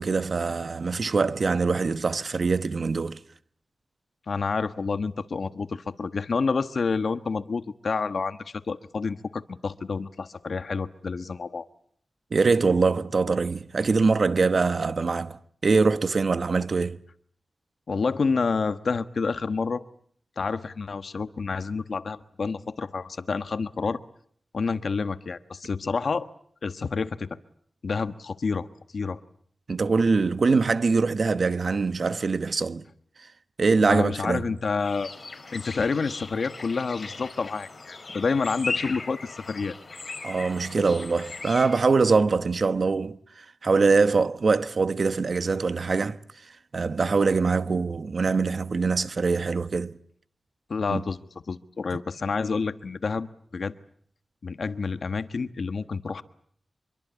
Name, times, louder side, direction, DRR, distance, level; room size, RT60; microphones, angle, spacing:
voice 1, 0.0-3.2 12.3-17.0 29.7-32.9 33.6-34.4 40.2-46.2 46.7-49.9 50.9-51.0, right 4 dB, 60° right, 1.0 m, -23 dB
voice 2, 4.3-11.7 17.9-19.8 20.4-24.0 24.5-26.3 26.6-27.3 27.8-28.7 28.9-29.2 33.8-35.1 35.5-39.7 50.7-51.2 51.5-53.7 54.4-56.2, left 4 dB, 70° left, 1.3 m, -28 dB
sound 1, 34.8-41.8, left 3 dB, 50° left, 4.6 m, -38 dB
25.5 x 23.0 x 8.4 m
wide cardioid pair, 85°, 0 cm